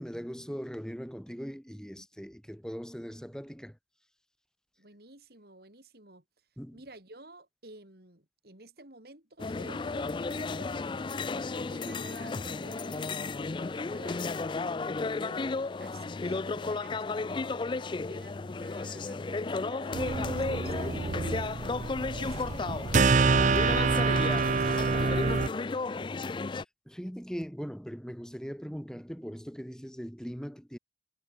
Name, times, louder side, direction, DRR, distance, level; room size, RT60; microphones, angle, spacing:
voice 1, 0.0-3.8 6.6-6.8 26.5-30.8, equal, 5° left, 5.8 m, -40 dB
voice 2, 4.8-6.2 6.7-14.4 15.1-24.2 24.5-26.1, right 2 dB, 60° right, 4.7 m, -52 dB
sound 1, 9.4-26.6, left 3 dB, 25° left, 0.4 m, -34 dB
sound 2, 19.9-25.5, right 4 dB, 45° right, 0.6 m, -27 dB
head